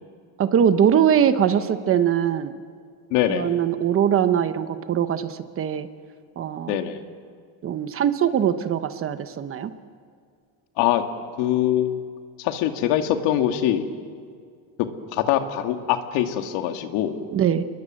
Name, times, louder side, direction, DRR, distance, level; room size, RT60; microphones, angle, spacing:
voice 1, 0.4-2.5 3.3-5.9 6.4-6.8 7.6-9.7 17.3-17.6, right 9 dB, 30° right, 11 dB, 1.0 m, -21 dB
voice 2, 3.1-3.6 6.7-7.0 10.8-11.0 11.4-12.0 12.4-13.9 14.8-17.2, left 11 dB, 90° left, 6 dB, 2.3 m, -23 dB
30.0 x 22.0 x 7.7 m, 2.1 s
cardioid pair, 165°, 43 cm